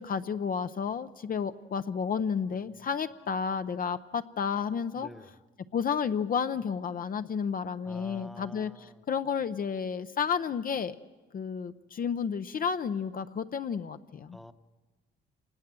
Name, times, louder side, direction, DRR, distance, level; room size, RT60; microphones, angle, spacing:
voice 1, 0.0-5.1 5.7-10.9 11.3-14.4, left 6 dB, 45° left, 10 dB, 0.7 m, -31 dB
voice 2, 2.4-2.9 5.0-5.4 7.8-9.1 14.3-14.5, left 1 dB, ahead, 10 dB, 1.0 m, -49 dB
26.5 x 19.5 x 7.6 m, 1.3 s
cardioid pair, 90°, 20 cm